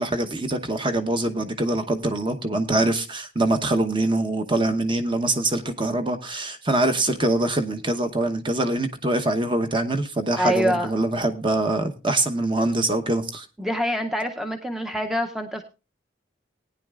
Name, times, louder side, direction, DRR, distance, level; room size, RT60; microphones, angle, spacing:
voice 1, 0.0-13.5, right 2 dB, 25° right, 6 dB, 0.9 m, -24 dB
voice 2, 10.4-10.9 13.6-15.6, equal, ahead, 4 dB, 0.6 m, -25 dB
19.0 x 9.7 x 2.4 m, 0.29 s
head